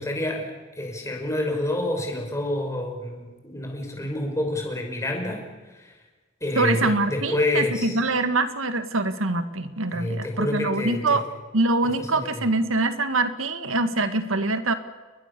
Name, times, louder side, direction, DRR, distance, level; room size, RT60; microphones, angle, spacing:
voice 1, 0.0-5.9 6.4-8.0 9.9-11.2 12.0-12.4, left 1 dB, 15° left, 2 dB, 5.6 m, -28 dB
voice 2, 6.6-11.2 11.5-14.7, right 2 dB, 85° right, 10 dB, 1.9 m, -24 dB
30.0 x 21.5 x 6.9 m, 1.3 s
head